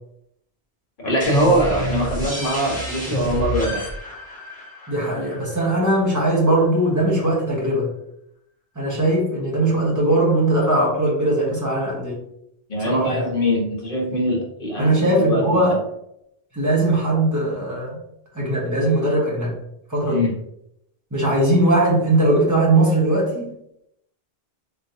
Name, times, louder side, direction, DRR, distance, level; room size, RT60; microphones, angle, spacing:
voice 1, 1.0-3.9 12.7-15.8 20.1-20.3, equal, 55° left, -1 dB, 1.3 m, -22 dB
sound 1, 1.2-6.6, right 1 dB, 10° left, 1.3 m, -30 dB
voice 2, 4.9-7.9 8.7-12.2 12.8-13.3 14.8-15.8 16.5-18.0 18.3-19.5 19.9-20.2 21.1-23.5, right 1 dB, 15° right, -4 dB, 1.2 m, -20 dB
4.1 x 3.0 x 2.7 m, 0.76 s
omnidirectional pair, 1.1 m